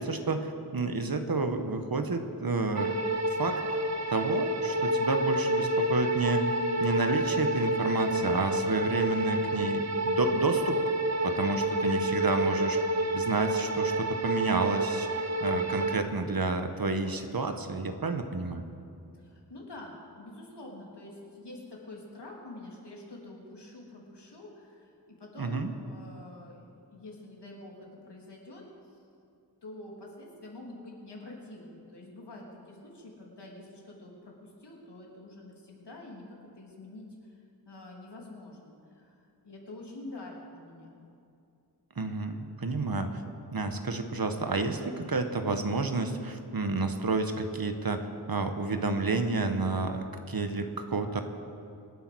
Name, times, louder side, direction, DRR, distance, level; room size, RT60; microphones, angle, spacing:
voice 1, 0.0-2.9 3.4-3.6 4.1-6.5 6.8-10.8 11.2-12.8 13.1-18.7 25.4-25.7 42.0-43.2 43.5-51.2, right 3 dB, 60° right, 7 dB, 1.4 m, -30 dB
sound 1, 2.8-16.0, right 1 dB, 40° right, 1.0 m, -29 dB
voice 2, 9.2-9.6 12.3-12.5 19.1-28.6 29.6-37.4 37.6-39.1 39.4-41.0, left 2 dB, 80° left, -2 dB, 3.4 m, -47 dB
25.5 x 8.6 x 6.2 m, 2.5 s
wide cardioid pair, 60°, 41 cm